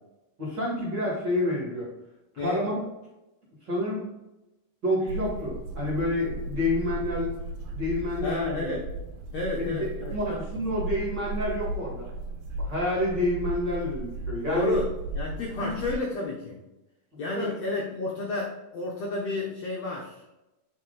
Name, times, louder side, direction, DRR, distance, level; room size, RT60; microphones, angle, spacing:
voice 1, 0.4-1.9 2.3-2.8 3.6-4.0 4.8-7.3 7.7-8.7 9.5-12.1 12.6-14.8 15.6-15.7 17.3-17.5, left 1 dB, 40° right, -4 dB, 1.9 m, -28 dB
sound 1, 5.1-15.9, right 2 dB, 70° right, 2.4 m, -35 dB
voice 2, 8.2-8.8 9.3-10.4 14.4-14.9 15.1-16.6 17.2-20.3, left 3 dB, 90° left, -2 dB, 1.4 m, -31 dB
8.9 x 4.4 x 3.9 m, 0.96 s
omnidirectional pair, 4.3 m